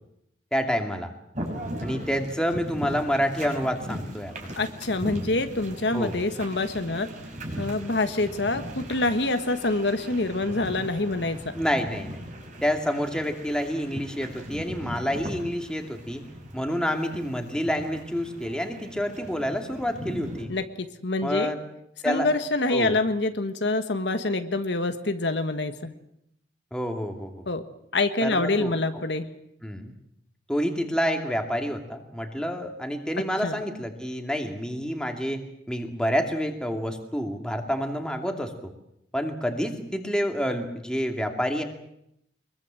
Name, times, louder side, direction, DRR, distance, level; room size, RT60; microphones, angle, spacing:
voice 1, 0.5-1.1 1.8-4.5 5.9-6.1 11.5-12.2 12.6-16.2 16.5-20.5 21.2-21.6 22.0-22.3 22.7-23.0 26.7-27.4 28.2-28.7 29.6-29.9 30.5-38.7 39.1-41.6, equal, 5° left, 3 dB, 2.6 m, -28 dB
sound 1, 1.3-20.5, equal, 40° right, 5.8 m, -38 dB
voice 2, 4.5-7.1 7.6-11.5 20.5-21.6 22.0-25.9 27.5-27.6 27.9-29.3 33.4-33.6, left 2 dB, 70° left, 8 dB, 1.4 m, -26 dB
24.0 x 22.5 x 7.7 m, 0.77 s
head